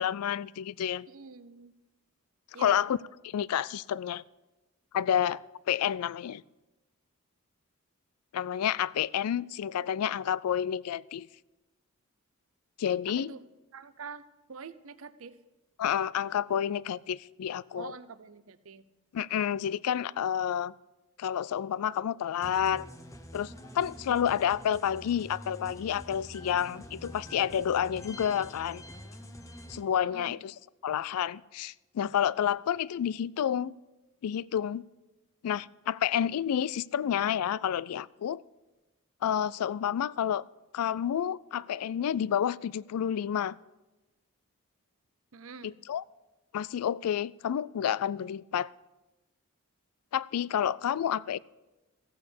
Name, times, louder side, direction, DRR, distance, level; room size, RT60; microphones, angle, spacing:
voice 1, 0.0-1.1 2.6-3.0 3.2-4.2 4.9-5.4 5.7-6.4 8.3-11.3 12.8-13.3 15.8-17.9 19.1-20.7 21.2-22.9 23.3-28.8 29.7-30.5 30.8-33.7 34.2-34.8 35.4-38.4 39.2-40.5 40.7-43.6 45.6-46.0 46.5-48.7 50.1-51.4, left 9 dB, 90° left, 0.3 m, -29 dB
voice 2, 1.1-1.7 2.5-2.9 13.2-13.4 13.7-14.2 14.5-15.4 17.8-18.8 24.1-24.2 30.0-30.4 45.3-45.7, right 5 dB, 70° right, 0.6 m, -45 dB
sound 1, 22.4-29.8, equal, 15° left, 0.8 m, -46 dB
15.0 x 8.4 x 6.8 m
head